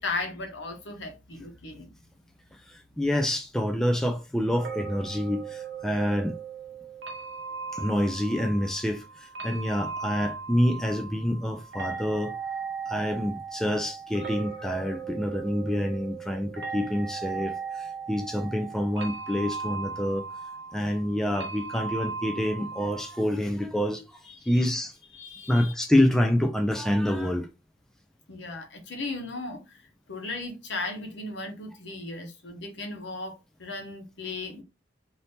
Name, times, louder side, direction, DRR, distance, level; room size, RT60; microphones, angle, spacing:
voice 1, 0.0-1.9 24.3-24.7 25.1-25.7 28.3-29.8 30.1-34.6, left 3 dB, 70° left, 1.0 m, -36 dB
voice 2, 2.7-6.4 7.7-12.3 12.9-20.2 20.7-24.2 24.5-25.0 25.5-27.5, left 1 dB, 5° left, 0.4 m, -27 dB
sound 1, 4.5-23.2, right 5 dB, 65° right, 0.7 m, -38 dB
2.7 x 2.7 x 3.4 m
head